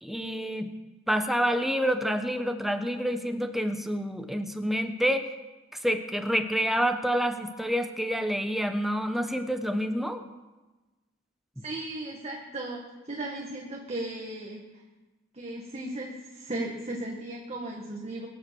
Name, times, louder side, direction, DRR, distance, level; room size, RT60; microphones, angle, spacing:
voice 1, 0.0-0.7 1.1-5.3 5.8-10.2 11.6-11.7, equal, ahead, 6 dB, 1.1 m, -28 dB
voice 2, 11.6-14.8 15.3-18.3, right 1 dB, 30° right, -1 dB, 1.8 m, -36 dB
22.5 x 8.4 x 7.1 m, 1.2 s
head